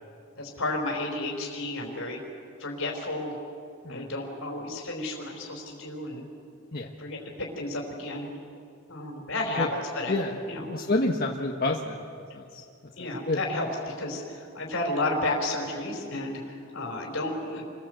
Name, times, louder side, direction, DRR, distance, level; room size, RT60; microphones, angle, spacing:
voice 1, 0.4-2.2 2.6-3.3 3.9-6.3 7.0-8.3 8.9-9.7 9.9-10.1 10.5-10.7 13.0-17.7, left 2 dB, 65° left, -2 dB, 4.7 m, -32 dB
voice 2, 10.7-12.0 12.3-12.6 13.0-13.4, left 2 dB, 45° left, -1 dB, 1.5 m, -28 dB
29.0 x 23.0 x 8.0 m, 2.4 s
head